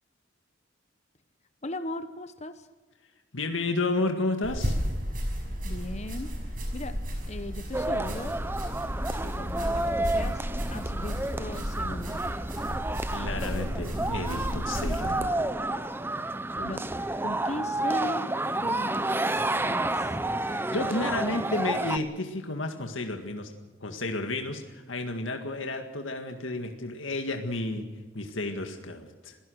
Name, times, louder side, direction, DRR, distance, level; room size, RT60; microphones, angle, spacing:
voice 1, 1.6-2.7 5.6-6.3 6.7-7.0 7.3-8.4 9.2-12.2 15.1-15.3 16.6-16.8 17.2-18.3 18.6-20.2, left 1 dB, 35° left, 9 dB, 1.0 m, -38 dB
voice 2, 3.3-4.8 10.9-11.1 13.1-15.4 20.5-23.5 23.8-27.9 28.1-29.4, left 2 dB, 80° left, 4 dB, 1.9 m, -32 dB
sound 1, 4.4-15.1, equal, 45° right, 6.0 m, -33 dB
sound 2, 7.7-22.0, right 2 dB, 10° right, 0.7 m, -30 dB
26.5 x 17.0 x 6.4 m, 1.3 s
head